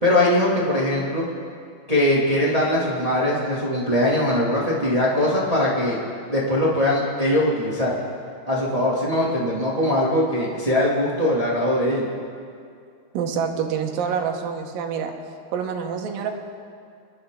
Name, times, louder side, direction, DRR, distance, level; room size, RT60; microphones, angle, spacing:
voice 1, 0.0-1.3 1.9-6.0 6.3-7.9 8.5-12.0, left 1 dB, 45° right, -6 dB, 0.4 m, -21 dB
voice 2, 13.1-15.1 15.5-16.3, right 7 dB, 70° right, 2 dB, 2.7 m, -26 dB
27.5 x 11.0 x 3.8 m, 2.3 s
omnidirectional pair, 4.6 m